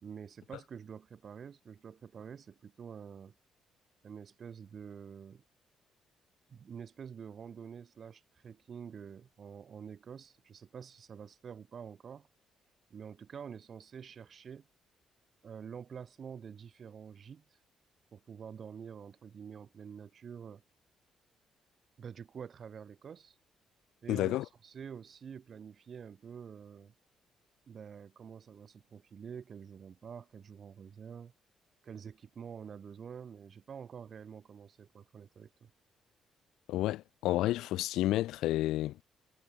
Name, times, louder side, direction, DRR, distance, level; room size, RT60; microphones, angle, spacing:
voice 1, 0.0-3.3 4.0-5.4 6.5-12.3 12.9-14.7 15.4-17.4 18.1-20.6 22.0-23.3 24.0-26.9 27.7-31.3 31.8-35.7, right 7 dB, 50° right, 3.1 m, -47 dB
voice 2, 24.1-24.4 36.7-39.0, left 15 dB, 90° left, 0.3 m, -30 dB
cardioid pair, 90°, 0 cm